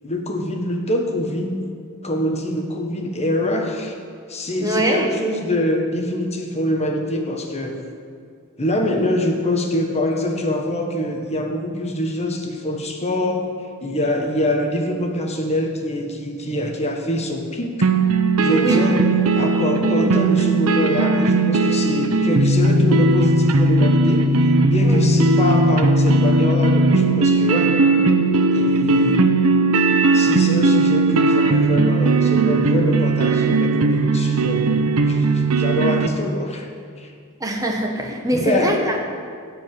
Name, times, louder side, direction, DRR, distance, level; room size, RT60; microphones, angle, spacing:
voice 1, 0.0-1.7 2.0-3.9 4.3-7.8 8.6-13.5 13.8-17.9 18.4-19.1 19.3-27.8 28.5-29.3 30.1-34.7 35.0-36.7 37.0-37.1 38.3-38.8, left 1 dB, 30° left, 2 dB, 1.4 m, -24 dB
voice 2, 4.6-5.1 18.5-18.8 24.8-25.0 37.4-39.1, right 1 dB, 15° right, 1 dB, 1.4 m, -22 dB
sound 1, 17.8-36.1, right 2 dB, 75° right, 0.8 m, -17 dB
15.0 x 5.2 x 9.3 m, 2.2 s
head